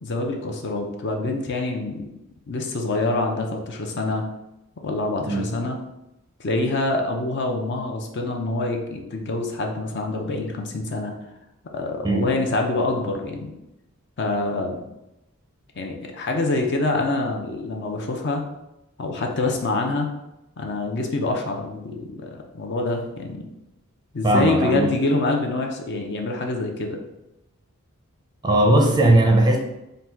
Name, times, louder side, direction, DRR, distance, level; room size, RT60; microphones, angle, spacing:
voice 1, 0.0-2.1 2.5-4.2 4.8-5.8 6.4-11.1 11.7-13.5 14.2-14.8 15.8-18.4 19.0-20.1 20.6-23.5 24.1-27.0, left 2 dB, 50° left, 3 dB, 0.6 m, -26 dB
voice 2, 5.2-5.5 12.0-12.3 24.2-24.9 28.4-29.6, right 1 dB, 20° right, 1 dB, 0.5 m, -18 dB
3.9 x 2.2 x 4.4 m, 0.91 s
head